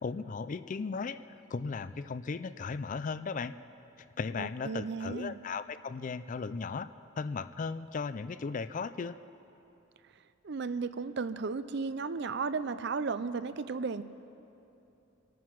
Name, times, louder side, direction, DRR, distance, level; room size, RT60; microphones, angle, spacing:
voice 1, 0.0-1.2 1.5-3.5 4.2-6.9 7.2-9.2, left 4 dB, 40° left, 13 dB, 0.4 m, -36 dB
voice 2, 4.4-5.4 10.4-14.0, right 4 dB, 60° right, 13 dB, 0.5 m, -34 dB
25.5 x 9.4 x 5.9 m, 2.9 s
head